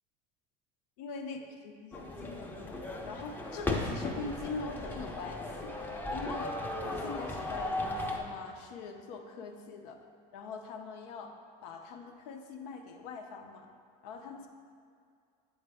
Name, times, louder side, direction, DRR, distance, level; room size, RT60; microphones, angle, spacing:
voice 1, 1.0-5.8 6.1-10.0 10.3-11.4 11.6-13.7 14.0-14.5, left 4 dB, 85° left, 4 dB, 0.7 m, -43 dB
sound 1, 1.9-8.2, left 1 dB, 10° left, 0.5 m, -36 dB
7.9 x 3.9 x 3.4 m, 2.3 s
cardioid pair, 130°, 20 cm